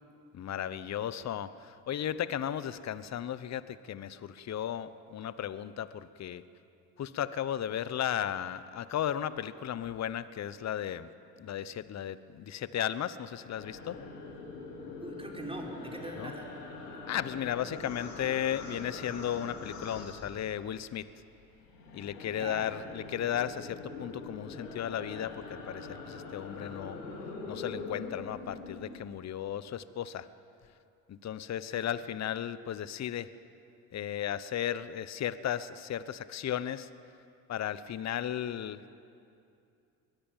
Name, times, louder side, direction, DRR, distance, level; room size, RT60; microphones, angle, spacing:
voice 1, 0.3-6.4 7.0-11.1 11.4-14.0 16.2-16.3 17.1-21.1 21.9-27.0 27.5-30.3 31.1-33.3 33.9-36.9 37.5-38.9, left 10 dB, 35° left, 15 dB, 0.9 m, -35 dB
sound 1, 13.6-20.9 21.2-29.2, left 3 dB, 80° left, 4.1 m, -43 dB
voice 2, 15.0-16.6 22.2-22.7 31.7-31.9, right 1 dB, 10° right, 0 dB, 4.9 m, -42 dB
22.5 x 20.0 x 7.4 m, 2.5 s
hypercardioid pair, 65°, 47 cm